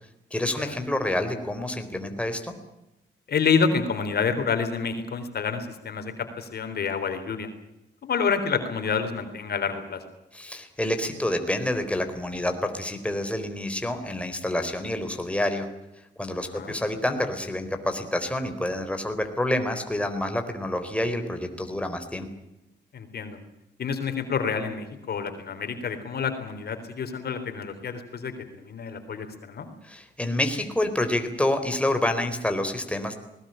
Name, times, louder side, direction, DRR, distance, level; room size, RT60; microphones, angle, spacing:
voice 1, 0.3-2.5 10.3-15.7 16.2-22.3 29.8-33.1, left 1 dB, 5° left, 6 dB, 4.1 m, -28 dB
voice 2, 3.3-7.5 8.0-10.0 16.5-16.8 22.9-23.4 23.8-29.7, left 6 dB, 60° left, 7 dB, 3.8 m, -28 dB
20.0 x 19.5 x 9.0 m, 0.90 s
cardioid pair, 95°, 18 cm